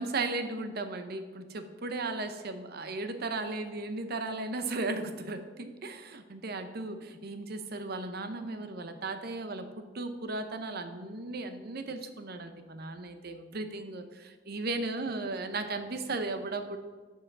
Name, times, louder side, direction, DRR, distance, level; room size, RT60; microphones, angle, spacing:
voice 1, 0.0-16.8, right 3 dB, 55° right, 8 dB, 0.7 m, -36 dB
7.2 x 5.6 x 6.1 m, 1.4 s
head